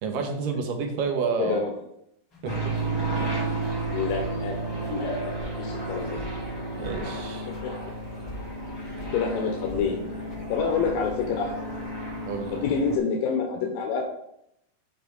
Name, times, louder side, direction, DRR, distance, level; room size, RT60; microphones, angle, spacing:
voice 1, 0.0-1.6 2.4-2.7 3.2-3.3 6.8-7.5 12.3-12.6, right 5 dB, 75° right, 4 dB, 2.7 m, -29 dB
voice 2, 1.4-1.7 3.9-4.6 4.9-6.2 7.6-7.7 9.1-10.0 10.5-11.6 12.5-14.0, left 5 dB, 90° left, 2 dB, 2.7 m, -27 dB
sound 1, 2.3-2.4 2.8-3.3 3.6-3.8 4.1-4.5 4.8-5.1 5.4-5.8 6.1-6.6 6.8-7.2 7.5-7.7 8.0-8.1 8.3-9.2 9.7-9.9 10.3-10.5 11.0-11.5 11.8-11.9, left 1 dB, 25° left, 2.8 m, -42 dB
sound 2, 2.4-13.0, right 2 dB, 10° left, 1.7 m, -32 dB
12.0 x 4.1 x 4.0 m, 0.78 s
omnidirectional pair, 4.0 m